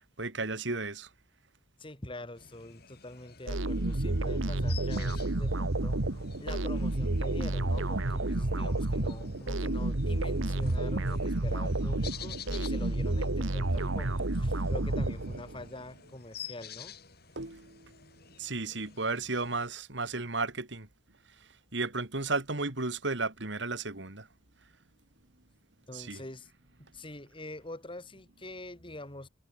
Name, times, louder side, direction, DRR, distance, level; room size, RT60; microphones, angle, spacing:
voice 1, 0.2-1.1 17.4-17.9 18.4-20.9 21.7-24.3 25.9-26.2, right 3 dB, 65° right, 2.6 m, -34 dB
voice 2, 1.8-6.0 6.4-17.0 25.9-26.5 26.9-29.3, left 1 dB, 25° left, 2.4 m, -45 dB
sound 1, 2.4-19.7, left 7 dB, 55° left, 5.7 m, -50 dB
sound 2, 3.5-15.7, right 2 dB, 85° right, 1.5 m, -30 dB
head